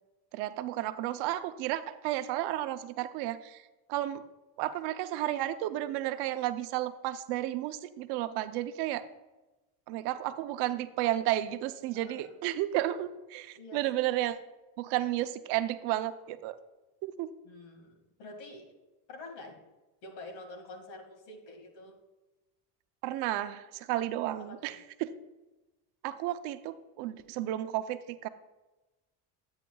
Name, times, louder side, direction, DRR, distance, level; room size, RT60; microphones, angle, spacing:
voice 1, 0.3-3.6 3.9-4.2 4.6-9.0 9.9-14.4 14.8-16.6 17.0-17.3 23.0-25.1 26.0-28.3, right 14 dB, 70° right, 11 dB, 0.6 m, -32 dB
voice 2, 11.9-12.4 13.6-13.9 17.4-18.7 19.1-19.6 20.0-22.0 24.5-24.8, left 2 dB, 65° left, 3 dB, 2.1 m, -47 dB
10.0 x 8.8 x 2.3 m, 1.1 s
cardioid pair, 165°, 41 cm